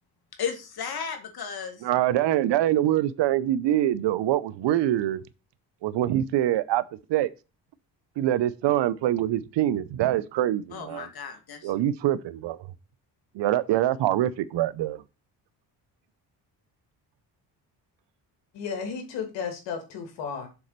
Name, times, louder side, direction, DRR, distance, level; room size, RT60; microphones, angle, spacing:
voice 1, 0.4-1.8 10.7-11.7, left 7 dB, 60° left, 2.4 m, -34 dB
voice 2, 1.8-5.2 5.8-6.8 7.1-7.3 8.2-11.1 11.6-12.6 13.3-15.0, right 13 dB, 75° right, 0.8 m, -24 dB
voice 3, 18.5-20.5, left 6 dB, 90° left, 2.6 m, -33 dB
7.1 x 4.3 x 6.7 m
cardioid pair, 80°, 42 cm